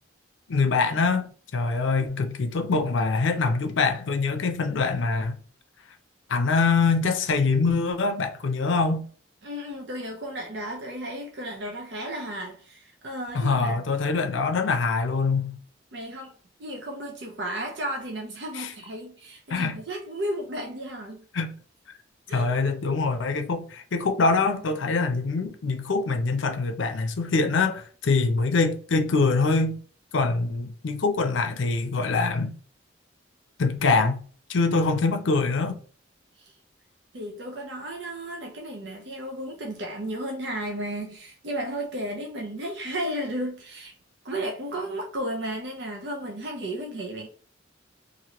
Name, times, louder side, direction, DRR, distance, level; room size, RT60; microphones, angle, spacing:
voice 1, 0.5-5.4 6.3-9.1 13.3-15.6 18.5-18.7 19.5-19.8 21.3-21.5 22.3-29.8 30.1-32.5 33.6-34.2 34.5-35.8, left 4 dB, 80° left, 0.5 m, -24 dB
voice 2, 9.4-13.8 15.9-16.3 16.6-21.2 22.3-22.5 36.4-36.5 37.1-43.9 44.2-47.3, right 1 dB, 65° right, 0.6 m, -34 dB
2.9 x 2.6 x 2.9 m
head